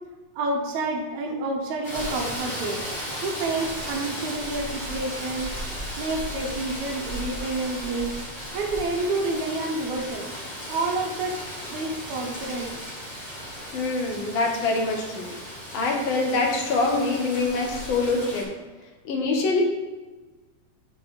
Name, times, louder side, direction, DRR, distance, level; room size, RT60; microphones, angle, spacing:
voice 1, 0.4-2.8 3.2-5.5 6.0-8.1 8.5-10.3 10.7-11.4 11.7-12.9, right 2 dB, 70° right, 0 dB, 2.1 m, -29 dB
Rain, 1.8-18.4, equal, 35° left, 1.6 m, -35 dB
voice 2, 13.7-15.3 15.7-18.5 19.0-19.6, left 3 dB, 80° left, 0 dB, 1.1 m, -24 dB
6.8 x 3.2 x 6.1 m, 1.2 s
omnidirectional pair, 3.7 m